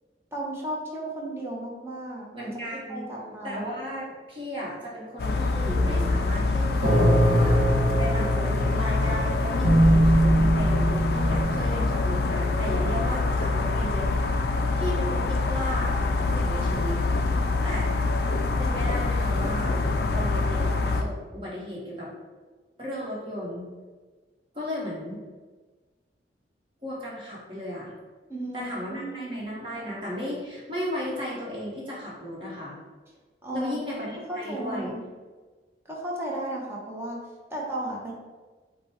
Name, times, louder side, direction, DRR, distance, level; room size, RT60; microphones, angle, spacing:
voice 1, 0.3-2.6 2.9-3.7 28.3-29.4 33.4-33.8 34.3-35.0 35.9-37.2 37.5-38.1, right 1 dB, 15° right, -3 dB, 0.9 m, -34 dB
voice 2, 2.3-3.1 3.4-14.3 14.7-17.0 17.6-18.1 18.6-19.9 20.1-22.1 22.8-23.7 24.5-25.2 26.8-27.9 28.5-32.7 33.5-34.9, equal, 30° right, -5 dB, 1.3 m, -35 dB
sound 1, 5.2-21.0, left 3 dB, 60° left, 0.4 m, -25 dB
sound 2, 5.7-11.5, right 1 dB, 50° right, 0.8 m, -22 dB
5.2 x 2.2 x 4.4 m, 1.3 s
head